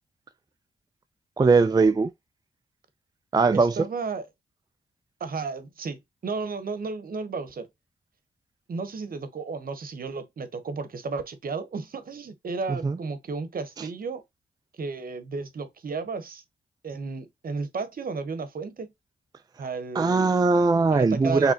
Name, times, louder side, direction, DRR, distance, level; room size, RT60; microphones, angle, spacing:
voice 1, 1.4-2.1 3.3-3.9 12.7-13.0 13.8-13.9 19.9-21.5, right 4 dB, 25° right, 0.4 m, -20 dB
voice 2, 3.5-4.3 5.2-7.7 8.7-14.2 14.8-16.4 16.8-18.9 19.6-20.3 20.9-21.5, right 4 dB, 60° right, 0.9 m, -33 dB
4.8 x 3.3 x 2.8 m
cardioid pair, 60°, 17 cm